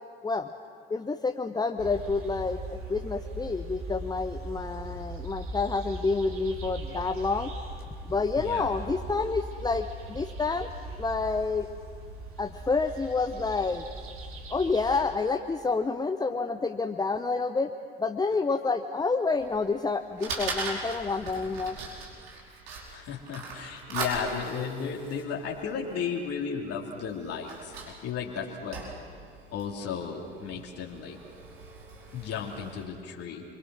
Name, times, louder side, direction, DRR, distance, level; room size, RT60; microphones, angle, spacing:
voice 1, 0.9-7.5 8.1-10.7 11.0-11.7 12.4-13.9 14.5-17.7 18.0-21.8, left 4 dB, 15° left, 7 dB, 1.0 m, -28 dB
sound 1, 1.8-15.0, right 2 dB, 45° right, 3.8 m, -40 dB
voice 2, 8.4-8.7 22.9-28.8 29.5-31.2 32.1-33.4, left 6 dB, 50° left, -1 dB, 3.1 m, -34 dB
Fire, 19.4-32.8, right 3 dB, 70° right, 5.1 m, -40 dB
29.5 x 23.5 x 6.3 m, 2.2 s
figure-of-eight pair, 65°, 31 cm